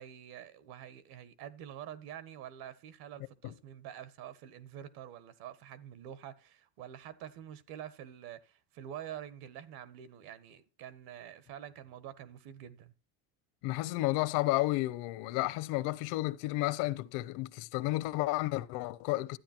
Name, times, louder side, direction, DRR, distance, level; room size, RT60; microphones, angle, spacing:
voice 1, 0.0-12.9, right 10 dB, 65° right, 1.6 m, -47 dB
voice 2, 13.6-19.4, left 19 dB, 75° left, 1.0 m, -32 dB
12.5 x 9.7 x 4.4 m
cardioid pair, 170°, 39 cm